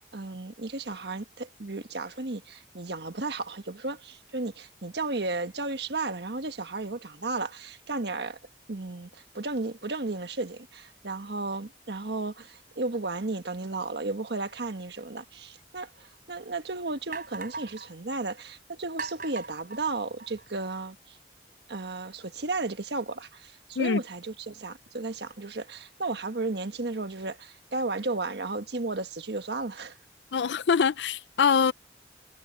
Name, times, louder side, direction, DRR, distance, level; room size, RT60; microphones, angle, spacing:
voice 1, 0.0-8.4 8.7-21.2 21.7-30.0, right 3 dB, 70° right, 1.4 m, -34 dB
sound 1, 15.8-15.9 16.5-16.6 17.1-17.9 19.0-20.5, right 4 dB, 50° right, 4.3 m, -39 dB
voice 2, 30.3-31.7, left 6 dB, 80° left, 0.5 m, -24 dB
head